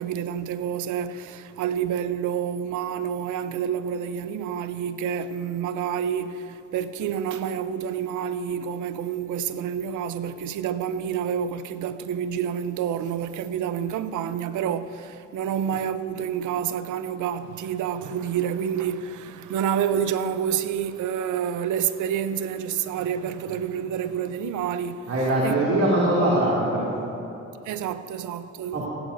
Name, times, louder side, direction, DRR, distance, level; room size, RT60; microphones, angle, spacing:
voice 1, 0.0-25.1 25.4-25.6 27.6-28.9, right 8 dB, 80° right, 0.7 m, -28 dB
voice 2, 25.1-26.9 28.7-28.9, right 1 dB, 55° right, 2.7 m, -22 dB
16.5 x 16.5 x 2.7 m
cardioid pair, 90°, 30 cm